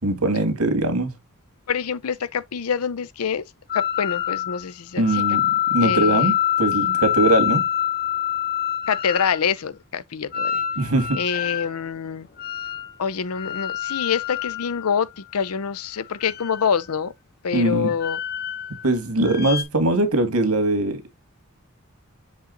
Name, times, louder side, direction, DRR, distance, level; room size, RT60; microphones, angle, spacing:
voice 1, 0.0-1.1 5.0-7.7 10.8-11.2 17.5-17.9 18.8-21.0, right 2 dB, 85° right, 2.0 m, -21 dB
voice 2, 1.7-5.4 5.8-6.3 8.9-10.6 11.1-12.3 13.0-17.1 17.4-18.2, left 6 dB, 90° left, 0.6 m, -26 dB
sound 1, 3.7-4.6 5.0-9.4 10.3-11.7 12.4-12.9 13.3-15.5 16.1-17.0 17.9-18.9 19.2-19.6, left 11 dB, 45° left, 0.9 m, -26 dB
7.3 x 3.9 x 3.8 m
head